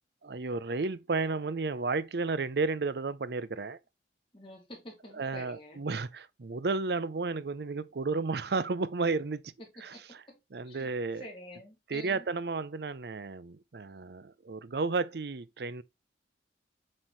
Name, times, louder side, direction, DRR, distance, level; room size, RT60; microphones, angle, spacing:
voice 1, 0.2-3.8 5.1-9.5 9.8-10.2 10.5-11.3 11.9-15.8, right 3 dB, 70° right, 0.6 m, -32 dB
voice 2, 4.3-5.8 9.9-10.4 10.6-10.9 11.2-12.3, left 1 dB, 30° left, 3.2 m, -48 dB
7.5 x 4.6 x 3.2 m
head